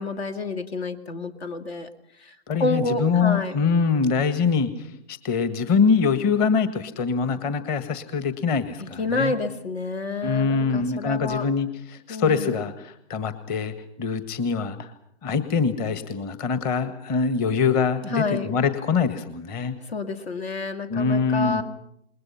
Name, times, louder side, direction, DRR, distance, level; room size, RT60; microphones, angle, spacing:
voice 1, 0.0-1.9 2.2-3.6 8.8-11.5 12.1-12.6 18.1-18.5 19.8-21.6, left 3 dB, 70° left, 9 dB, 2.4 m, -29 dB
voice 2, 2.5-9.4 10.2-14.9 15.2-19.8 20.9-21.6, left 5 dB, 25° left, 11 dB, 1.7 m, -24 dB
28.0 x 21.5 x 5.8 m, 0.73 s
hypercardioid pair, 125°, 33 cm